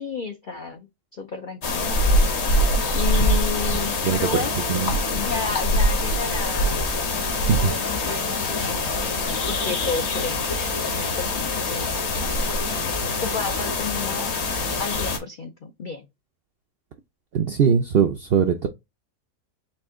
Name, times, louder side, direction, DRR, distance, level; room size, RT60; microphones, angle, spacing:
voice 1, 0.0-1.9 2.9-4.5 5.1-7.1 7.6-10.7 10.9-11.9 13.2-14.3 14.8-16.1, left 5 dB, 70° left, 0.4 m, -32 dB
sound 1, 1.6-15.2, left 1 dB, 50° left, 1.2 m, -24 dB
voice 2, 17.3-18.7, right 7 dB, 70° right, 0.5 m, -20 dB
4.3 x 2.7 x 3.5 m
omnidirectional pair, 1.6 m